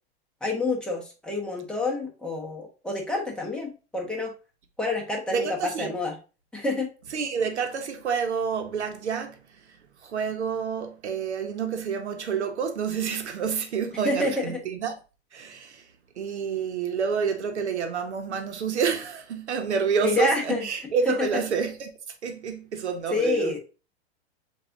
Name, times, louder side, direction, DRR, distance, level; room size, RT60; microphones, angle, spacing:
voice 1, 0.4-4.3 4.8-6.1 6.5-6.9 14.0-14.6 20.0-20.6 21.1-21.3 23.1-23.6, left 3 dB, 5° left, 1.2 m, -28 dB
voice 2, 5.3-5.9 7.1-14.9 15.3-15.9 16.1-21.9 22.2-23.6, right 6 dB, 90° right, 1.1 m, -28 dB
7.2 x 2.7 x 2.6 m
hypercardioid pair, 120°, 33 cm